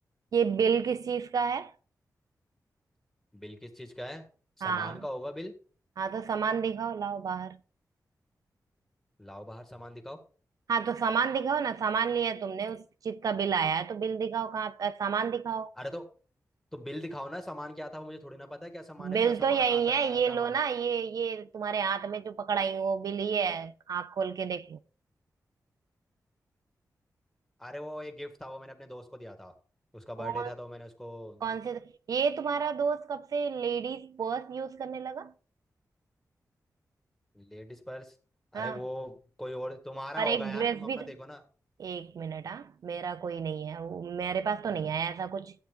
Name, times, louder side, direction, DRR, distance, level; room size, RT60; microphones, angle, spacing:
voice 1, 0.3-1.7 4.6-5.0 6.0-7.6 10.7-15.7 19.0-24.8 30.2-30.5 31.4-35.3 38.5-38.8 40.2-41.1 41.8-45.5, right 6 dB, 70° right, 0.5 m, -30 dB
voice 2, 3.3-4.2 4.6-5.5 9.2-10.2 15.8-16.0 16.7-20.5 27.6-29.5 29.9-31.6 37.3-38.1 38.5-41.4, equal, 5° left, 1.8 m, -41 dB
13.0 x 8.7 x 3.6 m
wide cardioid pair, 175°, 6 cm